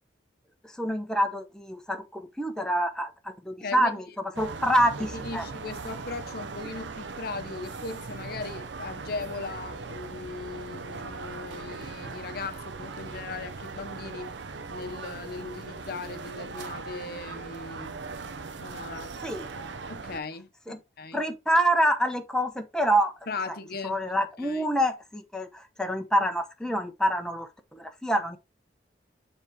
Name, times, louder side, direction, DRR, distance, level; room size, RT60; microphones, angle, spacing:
voice 1, 0.8-4.0 4.4-5.4 19.2-19.5 20.7-20.8 21.1-23.1 23.5-23.6 23.8-28.4, equal, 5° left, 1.0 m, -26 dB
voice 2, 3.6-4.0 5.1-14.3 14.7-18.0 18.6-19.2 19.9-21.2 23.3-24.0 24.4-24.6, left 4 dB, 55° left, 0.8 m, -38 dB
sound 1, 4.3-20.2, right 4 dB, 75° right, 0.7 m, -39 dB
7.2 x 3.7 x 4.6 m
head